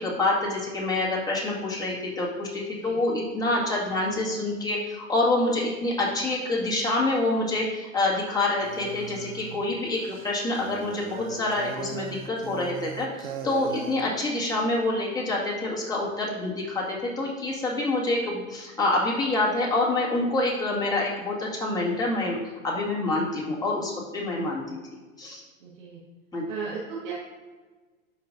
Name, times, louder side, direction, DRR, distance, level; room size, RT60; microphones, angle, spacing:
voice 1, 0.0-10.0 10.2-22.4 22.6-24.8 25.2-25.4 26.3-26.4, left 2 dB, 10° left, -6 dB, 2.1 m, -27 dB
sound 1, 8.6-14.0, right 6 dB, 85° right, 0.8 m, -39 dB
voice 2, 25.6-26.0 26.5-27.1, right 5 dB, 65° right, -7 dB, 1.9 m, -36 dB
12.0 x 5.2 x 2.7 m, 1.3 s
hypercardioid pair, 110°, 41 cm